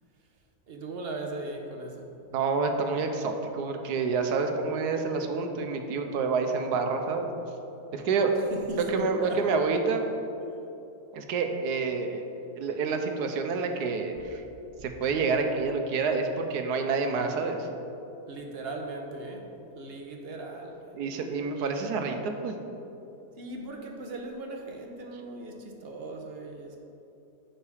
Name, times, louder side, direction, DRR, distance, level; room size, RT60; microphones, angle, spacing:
voice 1, 0.7-2.2 8.5-9.5 14.8-14.9 18.3-21.1 23.4-26.8, right 2 dB, 45° right, 2 dB, 0.9 m, -38 dB
voice 2, 2.3-7.3 7.9-8.4 8.7-10.0 11.1-12.2 12.6-14.4 14.8-17.7 21.0-22.6, right 4 dB, 80° right, 5 dB, 1.3 m, -28 dB
8.4 x 5.9 x 4.9 m, 2.9 s
omnidirectional pair, 1.7 m